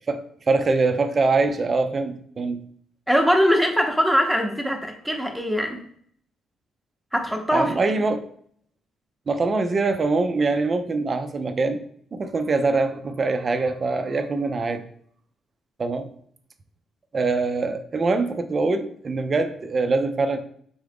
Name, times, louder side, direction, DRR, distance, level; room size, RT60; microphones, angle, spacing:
voice 1, 0.1-2.6 7.5-8.3 9.3-11.8 12.1-14.8 15.8-16.1 17.1-20.4, right 3 dB, 45° right, 9 dB, 0.5 m, -23 dB
voice 2, 3.1-5.8 7.1-7.7, equal, ahead, 4 dB, 0.9 m, -21 dB
3.9 x 3.7 x 3.5 m, 0.62 s
hypercardioid pair, 50°, 0 cm